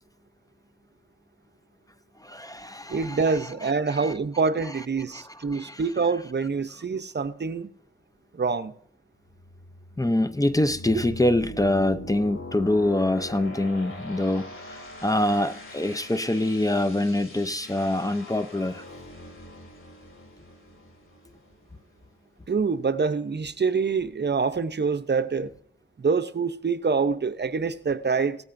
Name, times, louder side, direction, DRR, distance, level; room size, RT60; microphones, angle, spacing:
voice 1, 2.2-4.1 5.1-5.2 5.5-5.8 10.0-18.8, left 1 dB, 15° left, 0.6 m, -25 dB
voice 2, 2.9-7.7 8.3-8.7 22.5-25.5 26.0-28.4, right 5 dB, 55° right, 0.7 m, -26 dB
sound 1, 9.3-22.0, left 1 dB, 75° left, 3.3 m, -42 dB
17.5 x 14.5 x 2.6 m
wide cardioid pair, 65°, 21 cm